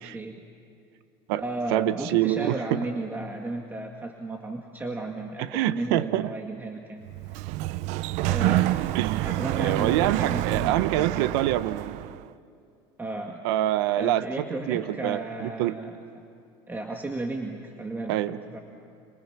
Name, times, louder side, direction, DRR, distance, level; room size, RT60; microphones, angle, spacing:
voice 1, 0.0-0.4 1.4-7.1 8.2-9.0 9.2-11.4 13.0-13.4 14.0-16.0 16.7-18.6, right 2 dB, 15° right, 2 dB, 2.0 m, -34 dB
voice 2, 1.7-2.8 5.4-6.3 8.9-12.0 13.4-14.2 14.7-15.8 18.1-18.4, right 14 dB, 80° right, 14 dB, 1.0 m, -26 dB
Sliding door, 7.1-12.2, right 17 dB, 65° right, 0.5 m, -28 dB
30.0 x 28.0 x 6.0 m, 2.6 s
supercardioid pair, 105°, 13 cm